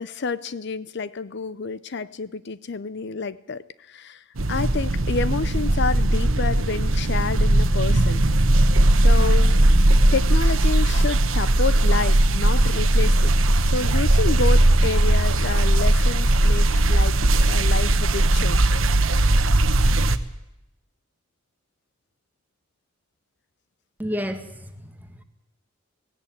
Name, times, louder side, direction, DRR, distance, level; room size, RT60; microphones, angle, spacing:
voice 1, 0.0-3.6 3.9-8.2 9.0-9.5 10.1-13.3 13.6-17.2 17.4-18.6, left 4 dB, 60° left, 16 dB, 0.6 m, -29 dB
sound 1, 4.4-20.2, right 1 dB, 85° right, 1.1 m, -18 dB
voice 2, 24.0-25.2, equal, 10° right, 6 dB, 1.8 m, -31 dB
17.5 x 17.0 x 8.7 m, 0.87 s
head